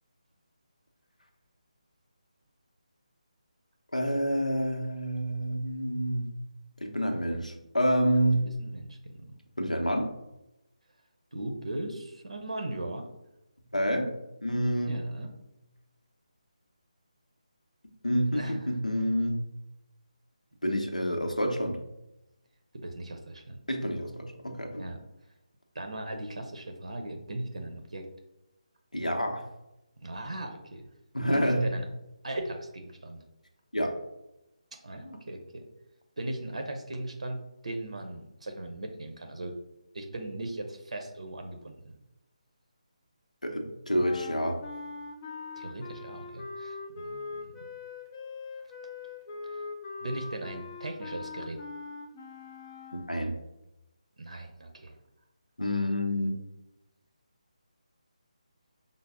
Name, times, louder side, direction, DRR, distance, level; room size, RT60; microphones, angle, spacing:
voice 1, 3.9-6.3 6.8-8.4 9.6-10.1 13.7-14.1 14.4-15.0 18.0-19.4 20.6-21.8 23.7-24.9 28.9-29.4 31.1-31.6 33.7-33.9 43.4-44.6 52.9-53.4 55.6-56.4, equal, 90° left, 3 dB, 0.7 m, -28 dB
voice 2, 8.4-9.3 11.3-13.1 14.8-15.3 18.3-18.8 22.7-23.6 24.8-25.0 25.7-28.1 30.0-30.9 31.3-31.8 32.2-33.2 34.8-35.6 36.2-39.5 39.9-41.9 45.6-47.5 49.5-49.6 50.0-51.6 54.2-55.0, right 1 dB, 60° right, 4 dB, 0.6 m, -38 dB
sound 1, 44.0-53.2, left 4 dB, 20° left, 0.4 m, -42 dB
5.2 x 2.0 x 3.5 m, 0.92 s
figure-of-eight pair, 155°, 4 cm